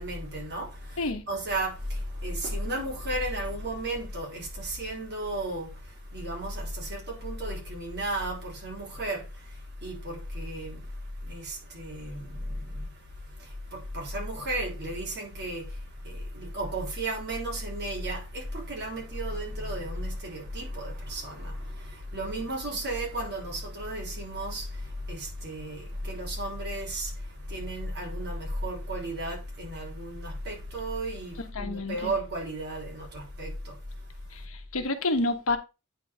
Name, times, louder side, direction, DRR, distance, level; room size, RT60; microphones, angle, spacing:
voice 1, 0.0-34.1, right 1 dB, 50° right, 3.7 m, -34 dB
voice 2, 31.6-32.1 34.3-35.6, left 2 dB, 65° left, 1.2 m, -29 dB
9.1 x 4.6 x 4.6 m
head